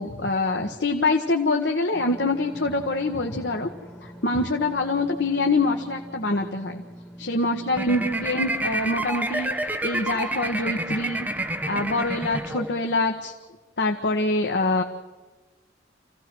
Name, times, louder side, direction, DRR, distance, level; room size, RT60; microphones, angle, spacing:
voice 1, 0.0-3.7 4.0-6.8 7.2-13.3 13.8-14.8, left 2 dB, 70° left, 2 dB, 1.5 m, -25 dB
sound 1, 1.9-8.4, equal, 5° left, 3.0 m, -44 dB
sound 2, 7.7-13.0, right 1 dB, 10° right, 1.1 m, -29 dB
28.0 x 16.5 x 6.3 m, 1.2 s
head